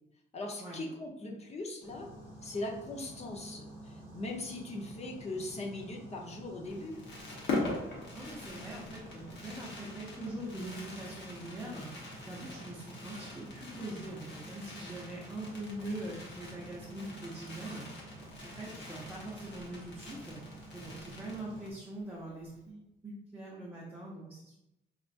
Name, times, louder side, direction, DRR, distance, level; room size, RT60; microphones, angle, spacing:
voice 1, 0.3-2.1 2.4-7.0, left 2 dB, 35° left, 0 dB, 0.7 m, -40 dB
sound 1, 1.8-21.7, right 1 dB, 15° left, 1.3 m, -50 dB
Fireworks, 6.6-21.8 22.1-22.2 22.4-22.7, left 2 dB, 65° left, 1.1 m, -43 dB
voice 2, 8.1-11.9 12.2-18.0 18.4-20.4 20.7-24.6, right 1 dB, 10° right, -6 dB, 0.7 m, -43 dB
5.0 x 2.5 x 2.4 m, 0.89 s
cardioid pair, 120°, 20 cm